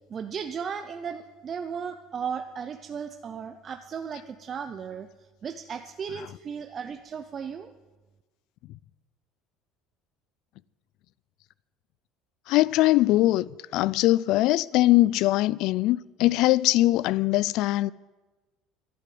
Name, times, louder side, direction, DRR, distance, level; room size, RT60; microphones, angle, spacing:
voice 1, 0.1-5.1 5.4-7.7, right 7 dB, 30° right, 0.6 m, -35 dB
voice 2, 12.5-17.9, left 17 dB, 65° left, 0.3 m, -22 dB
11.5 x 10.5 x 7.6 m
cardioid pair, 130°, 0 cm